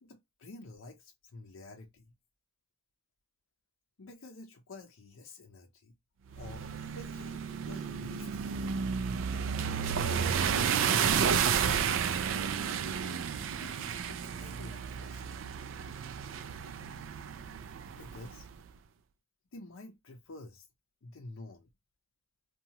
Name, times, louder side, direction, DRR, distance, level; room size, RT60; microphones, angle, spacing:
voice 1, 0.0-2.1 4.0-5.9 6.4-8.9 11.0-12.3 13.6-15.2 17.9-18.5 19.5-20.7 21.0-21.7, left 2 dB, 80° left, 0.6 m, -49 dB
sound 1, 6.3-18.5, right 7 dB, 70° right, 0.3 m, -32 dB
2.7 x 2.3 x 2.9 m
head